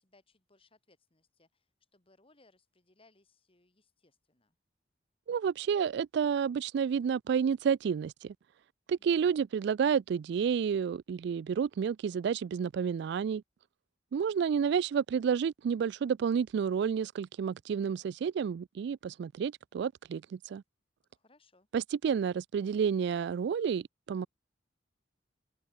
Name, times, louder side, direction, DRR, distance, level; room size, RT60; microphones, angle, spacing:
voice 1, 0.0-4.5 9.0-9.3 14.2-14.6 21.1-21.7, left 2 dB, 30° left, 3.8 m, -67 dB
voice 2, 5.3-8.3 8.9-13.4 14.1-20.6 21.7-24.3, right 7 dB, 65° right, 0.3 m, -30 dB
open air
head